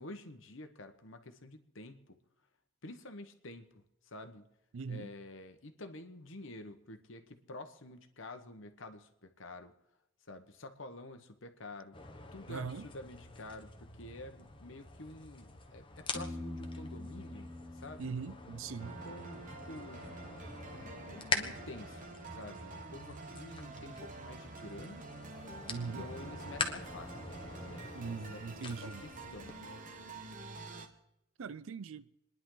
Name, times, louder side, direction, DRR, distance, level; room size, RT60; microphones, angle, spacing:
voice 1, 0.0-2.2 2.8-4.4 4.9-9.7 10.3-12.0 12.3-18.1 18.8-20.1 20.8-25.0 25.8-27.1 27.6-29.8, left 2 dB, 70° left, 1.3 m, -49 dB
voice 2, 4.7-5.1 12.5-12.8 18.0-19.0 25.7-26.0 27.9-29.0 31.4-32.1, right 5 dB, 75° right, 0.5 m, -40 dB
sound 1, 11.9-29.5, left 4 dB, 25° left, 1.2 m, -44 dB
Piano, 16.1-19.8, left 1 dB, 15° right, 1.5 m, -46 dB
sound 2, 18.8-30.9, right 3 dB, 40° right, 1.2 m, -48 dB
28.0 x 10.5 x 3.9 m
head